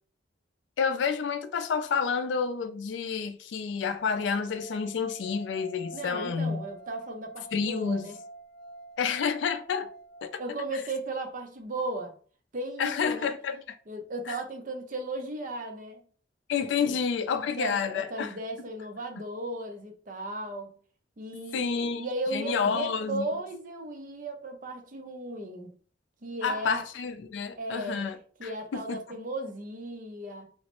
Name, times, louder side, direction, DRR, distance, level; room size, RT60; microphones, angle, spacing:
voice 1, 0.8-6.6 7.5-8.1 9.0-9.9 10.2-10.4 12.8-13.6 14.3-14.4 16.5-18.3 21.5-22.0 22.3-23.2 26.4-28.2 28.7-29.0, left 6 dB, 75° left, 0.3 m, -29 dB
sound 1, 3.9-11.0, right 2 dB, 55° left, 0.7 m, -47 dB
voice 2, 5.9-8.2 10.4-12.1 12.5-13.3 13.9-16.1 16.8-17.0 17.6-20.8 21.2-25.8 26.2-26.9 27.6-30.5, right 2 dB, 45° right, 0.5 m, -36 dB
3.1 x 2.0 x 2.9 m
head